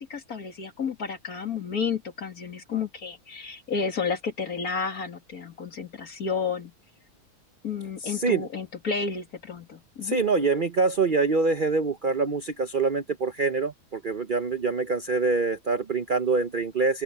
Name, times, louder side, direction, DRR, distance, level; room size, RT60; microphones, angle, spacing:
voice 1, 0.0-6.7 7.6-10.2, left 5 dB, 65° left, 2.8 m, -31 dB
voice 2, 8.0-8.5 10.0-17.0, right 4 dB, 45° right, 0.7 m, -25 dB
open air
omnidirectional pair, 1.7 m